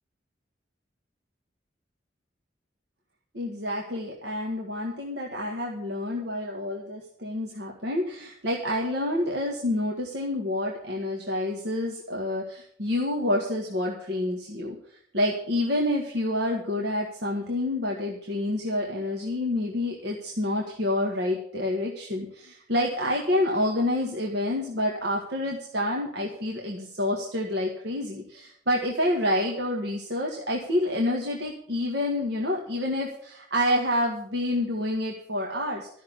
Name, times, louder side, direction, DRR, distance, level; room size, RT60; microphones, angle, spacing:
voice 1, 3.3-14.8 15.1-35.9, left 1 dB, 65° right, -1 dB, 1.9 m, -28 dB
13.5 x 6.4 x 8.6 m, 0.64 s
head